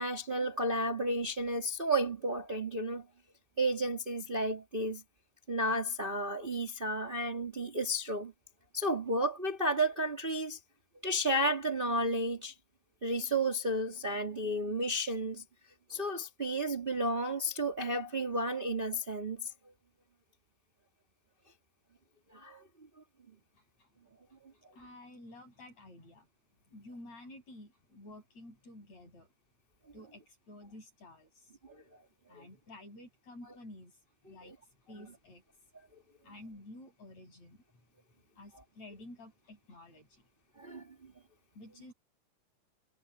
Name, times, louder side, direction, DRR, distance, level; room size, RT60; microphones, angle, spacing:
voice 1, 0.0-3.0 3.6-5.0 5.5-8.3 8.7-10.6 11.0-12.5 13.0-15.4 15.9-19.5 22.3-22.6 32.4-32.5 34.4-34.5 40.6-40.8, right 1 dB, 20° right, 2.0 m, -32 dB
voice 2, 23.5-23.9 24.5-26.3 26.7-29.3 29.9-31.6 32.3-34.0 34.2-34.5 34.8-35.4 36.2-37.8 38.4-40.2 41.6-41.9, left 1 dB, 55° left, 9.0 m, -52 dB
omnidirectional pair, 3.6 m